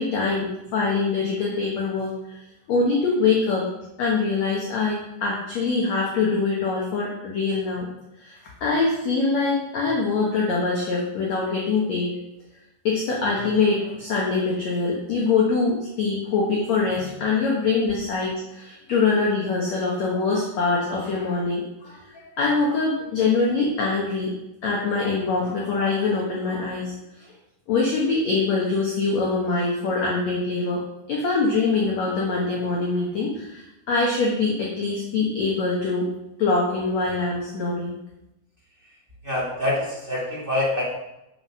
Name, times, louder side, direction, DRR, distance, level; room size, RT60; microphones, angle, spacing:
voice 1, 0.0-2.4 2.7-3.7 4.0-7.9 8.2-8.3 8.6-12.1 12.8-24.3 24.6-26.9 27.7-30.8 31.1-36.1 36.4-38.0, left 4 dB, 55° left, -3 dB, 2.1 m, -24 dB
voice 2, 39.2-40.8, left 1 dB, 40° right, -6 dB, 0.7 m, -25 dB
8.0 x 6.3 x 6.3 m, 0.90 s
omnidirectional pair, 4.5 m